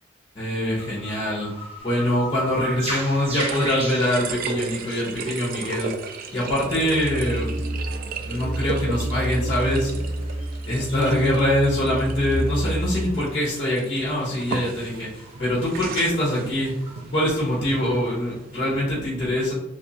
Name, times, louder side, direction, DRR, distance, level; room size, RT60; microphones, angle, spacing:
voice 1, 0.3-1.5 1.8-5.9 6.3-7.7 8.2-9.9 10.7-16.7 17.1-19.5, left 1 dB, 30° left, -5 dB, 0.9 m, -24 dB
sound 1, 0.8-17.6, right 1 dB, 30° right, 0.7 m, -40 dB
sound 2, 1.8-18.8, right 4 dB, 45° right, 0.3 m, -36 dB
sound 3, 4.5-13.1, right 1 dB, 65° right, 1.5 m, -30 dB
3.4 x 3.0 x 2.7 m, 0.91 s
head